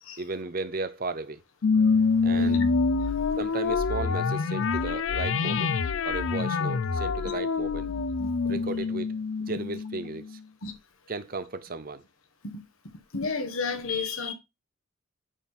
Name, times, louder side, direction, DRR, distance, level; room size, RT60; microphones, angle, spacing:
voice 1, 0.2-1.4 2.2-2.6 3.4-5.7 6.1-7.9 8.4-9.1 9.5-10.4 11.1-12.0, right 3 dB, 40° right, 0.7 m, -35 dB
sound 1, 1.6-10.4, left 4 dB, 65° left, 0.5 m, -26 dB
voice 2, 2.3-2.8 3.0-3.4 8.2-8.3 10.6-10.7 12.4-12.6 13.1-14.3, left 4 dB, 85° left, 1.3 m, -32 dB
9.1 x 4.1 x 4.2 m
head